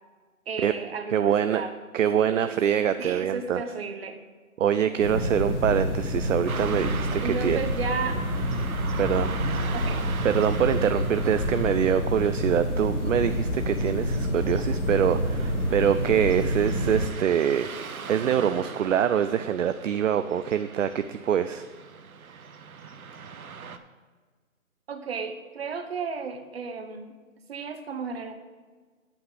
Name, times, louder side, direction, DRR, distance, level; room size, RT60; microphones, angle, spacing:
voice 1, 0.5-1.7 2.1-2.6 3.0-4.2 7.2-8.2 9.7-10.0 24.9-27.1 27.5-28.3, right 5 dB, 45° right, 7 dB, 1.0 m, -33 dB
voice 2, 1.1-1.6 1.9-3.6 4.6-7.6 9.0-9.3 10.2-21.7 22.3-22.4, right 9 dB, 65° right, 10 dB, 0.5 m, -25 dB
sound 1, 5.0-17.1, equal, 55° left, 2.1 m, -28 dB
Car passing by / Traffic noise roadway noise, 6.5-23.8, right 6 dB, 85° right, 0.9 m, -41 dB
8.5 x 5.9 x 6.6 m, 1.4 s
hypercardioid pair, 155°, 42 cm